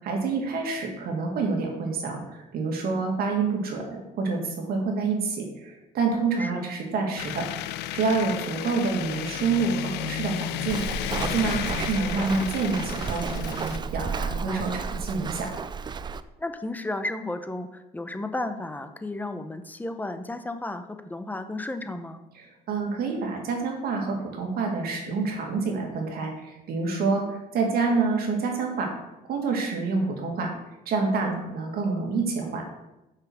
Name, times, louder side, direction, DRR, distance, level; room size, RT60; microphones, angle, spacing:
voice 1, 0.0-7.5 7.9-15.5 22.4-28.9 29.3-30.5 30.9-32.6, right 4 dB, 65° right, 1 dB, 2.0 m, -27 dB
sound 1, 7.2-13.8, left 13 dB, 80° left, 0.5 m, -33 dB
Walk footsteps, 10.7-16.2, right 5 dB, 25° right, 0.4 m, -32 dB
voice 2, 14.2-14.6 16.4-22.2, left 2 dB, 10° left, 9 dB, 0.7 m, -33 dB
6.7 x 5.8 x 6.2 m, 0.94 s
cardioid pair, 110°, 17 cm